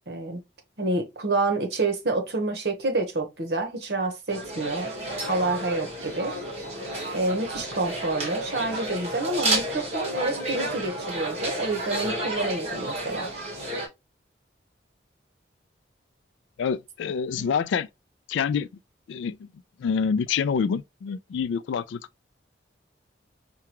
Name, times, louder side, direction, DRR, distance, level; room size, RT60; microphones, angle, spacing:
voice 1, 0.1-0.4 0.8-4.9 5.3-6.4 7.1-13.3 17.4-17.5, right 2 dB, 60° right, 1.0 m, -28 dB
sound 1, 4.3-13.9, right 1 dB, 35° right, 1.3 m, -31 dB
voice 2, 16.6-17.9 18.3-18.7 19.1-19.5 19.8-22.0, left 6 dB, 80° left, 0.3 m, -26 dB
4.7 x 2.3 x 2.9 m
head